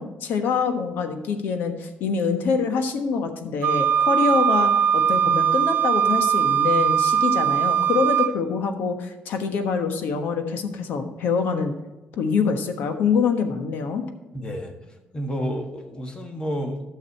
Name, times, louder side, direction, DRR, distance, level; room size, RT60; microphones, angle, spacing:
voice 1, 0.0-11.8 12.2-14.0, left 5 dB, 75° left, 6 dB, 1.2 m, -25 dB
Wind instrument woodwind instrument, 3.6-8.3, right 8 dB, 70° right, 1.1 m, -20 dB
voice 2, 14.3-16.8, equal, 25° left, 4 dB, 1.5 m, -30 dB
12.5 x 6.5 x 4.2 m, 1.1 s
cardioid pair, 125°, 3 cm